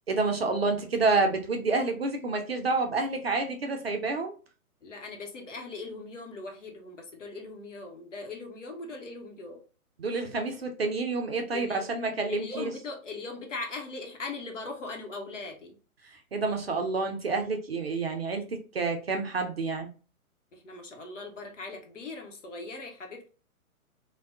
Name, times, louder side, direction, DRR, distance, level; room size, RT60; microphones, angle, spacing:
voice 1, 0.1-4.4 10.0-12.7 16.1-19.9, right 3 dB, 45° right, 0.5 m, -29 dB
voice 2, 4.8-9.6 11.5-11.9 12.3-15.8 20.5-23.3, left 3 dB, 55° left, 0.9 m, -40 dB
3.3 x 2.2 x 2.5 m
figure-of-eight pair, 130°, 44 cm